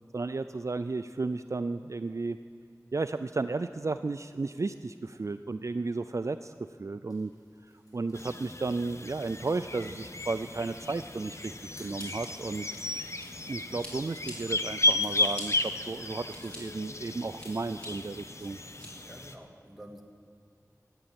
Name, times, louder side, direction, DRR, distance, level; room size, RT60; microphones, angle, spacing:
voice 1, 0.1-2.4 2.9-7.3 7.9-12.7 13.5-18.6, right 3 dB, 50° right, 10 dB, 0.3 m, -33 dB
sound 1, 7.1-18.1, left 1 dB, 70° left, 4.3 m, -62 dB
sound 2, 8.1-19.4, left 2 dB, 50° left, 0.8 m, -34 dB
Scissors, 12.0-13.5 13.8-14.3 14.8-15.4 16.0-16.6 17.0-17.9 18.4-18.9, equal, 20° left, 4.2 m, -46 dB
voice 2, 19.1-20.0, equal, 5° right, 1 dB, 1.8 m, -48 dB
13.5 x 8.9 x 8.7 m, 2.4 s
wide cardioid pair, 50°, 6 cm